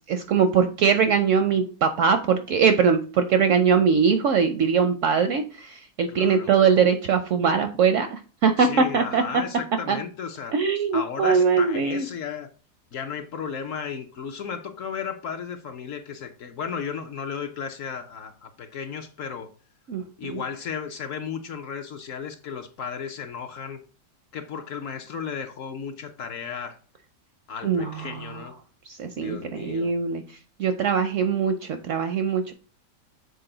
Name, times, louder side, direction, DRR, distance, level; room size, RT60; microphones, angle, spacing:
voice 1, 0.1-9.2 9.9-10.0 10.5-12.1 19.9-20.4 27.6-28.4 28.9-30.2 30.6-32.5, right 6 dB, 70° right, 0.7 m, -22 dB
voice 2, 6.1-6.5 8.6-10.5 10.9-12.5 12.9-19.5 20.2-23.8 24.3-26.8 27.5-28.5 29.2-29.9, left 6 dB, 65° left, 0.9 m, -34 dB
6.8 x 4.0 x 3.8 m
omnidirectional pair, 1.8 m